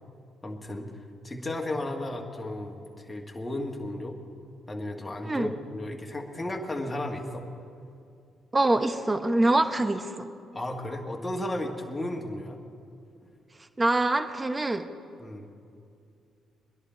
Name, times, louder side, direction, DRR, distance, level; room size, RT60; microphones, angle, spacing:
voice 1, 0.4-0.9 1.2-4.2 4.7-7.5 10.5-12.6 15.2-15.5, left 1 dB, 20° left, 0 dB, 1.7 m, -34 dB
voice 2, 5.2-5.5 8.5-10.3 13.8-14.9, right 2 dB, 25° right, 9 dB, 1.0 m, -24 dB
21.5 x 11.0 x 4.5 m, 2.4 s
supercardioid pair, 55°, 0 cm